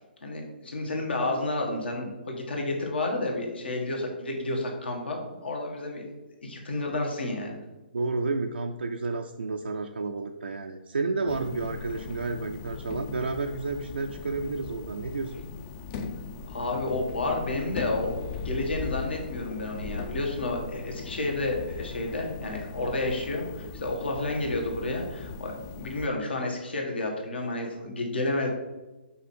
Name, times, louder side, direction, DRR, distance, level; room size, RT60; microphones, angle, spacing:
voice 1, 0.2-6.1 6.4-7.6 16.5-28.5, left 2 dB, 70° left, 1 dB, 1.6 m, -31 dB
voice 2, 7.9-15.4, right 3 dB, 80° right, 4 dB, 0.4 m, -31 dB
sound 1, 11.3-26.1, left 5 dB, 30° left, 0.5 m, -39 dB
5.7 x 4.3 x 4.3 m, 1.1 s
figure-of-eight pair, 135°, 6 cm